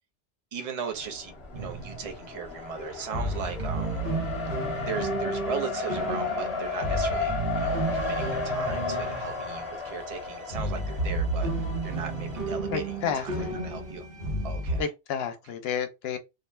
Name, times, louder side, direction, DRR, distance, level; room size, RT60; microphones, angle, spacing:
voice 1, 0.5-4.0 4.8-14.1 14.4-14.9, right 6 dB, 40° right, 0.6 m, -37 dB
Race car auto racing, 0.9-13.5, left 3 dB, 30° left, 0.9 m, -34 dB
sound 1, 1.5-2.5 2.8-2.9 3.0-14.8, right 2 dB, 60° right, 0.9 m, -32 dB
voice 2, 12.7-13.6 14.8-16.2, left 7 dB, 70° left, 0.8 m, -31 dB
2.5 x 2.1 x 3.1 m
omnidirectional pair, 1.1 m